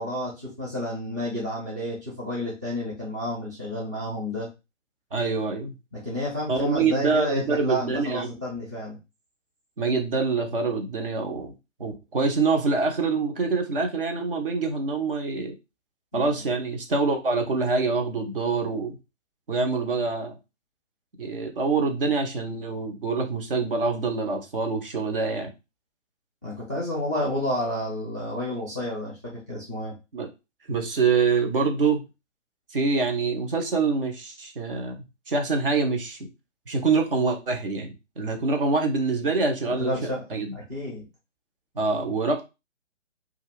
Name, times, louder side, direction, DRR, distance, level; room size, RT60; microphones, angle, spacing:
voice 1, 0.0-4.5 5.9-9.0 16.1-16.5 26.4-29.9 39.6-41.0, left 1 dB, 15° right, -7 dB, 0.5 m, -31 dB
voice 2, 5.1-5.7 6.5-8.3 9.8-11.5 11.8-15.5 16.1-19.0 19.5-20.4 21.2-25.5 30.1-30.3 30.7-32.0 32.7-36.3 36.7-39.9 40.3-40.5 41.8-42.4, right 4 dB, 45° right, 3 dB, 0.7 m, -25 dB
2.5 x 2.4 x 3.2 m, 0.26 s
figure-of-eight pair, 135°, 38 cm